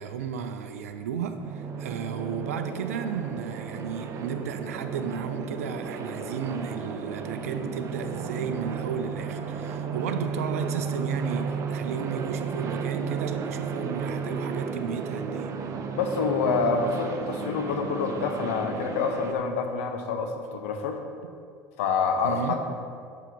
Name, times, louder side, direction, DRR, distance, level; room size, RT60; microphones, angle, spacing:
voice 1, 0.0-15.5 22.2-22.6, right 6 dB, 80° right, 8 dB, 0.5 m, -34 dB
sound 1, 1.4-19.3, right 5 dB, 45° right, 0.8 m, -33 dB
voice 2, 15.9-21.0 21.8-22.8, left 5 dB, 75° left, 5 dB, 0.9 m, -27 dB
8.0 x 4.9 x 5.3 m, 2.3 s
hypercardioid pair, 75°, 8 cm